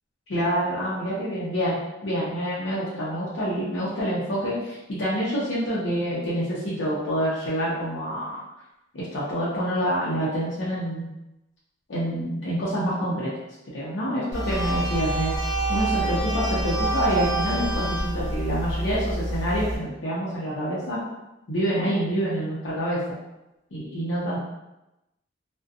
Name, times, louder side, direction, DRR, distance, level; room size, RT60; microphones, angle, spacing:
voice 1, 0.3-8.4 8.9-11.1 11.9-13.3 13.7-15.3 15.7-21.0 21.5-23.0 23.7-24.4, equal, 85° left, -8 dB, 0.6 m, -27 dB
sound 1, 14.3-19.8, right 2 dB, 25° right, 1.1 m, -27 dB
2.6 x 2.1 x 2.4 m, 0.95 s
head